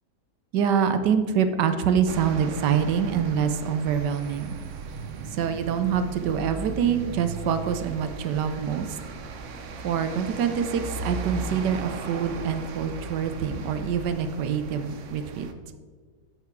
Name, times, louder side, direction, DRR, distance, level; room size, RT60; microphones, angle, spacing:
voice 1, 0.5-4.6 5.3-8.9 9.8-15.5, right 7 dB, 85° right, 9 dB, 1.3 m, -25 dB
sound 1, 2.1-15.5, right 4 dB, 55° right, 0.9 m, -37 dB
13.0 x 5.9 x 4.6 m, 1.5 s
omnidirectional pair, 1.8 m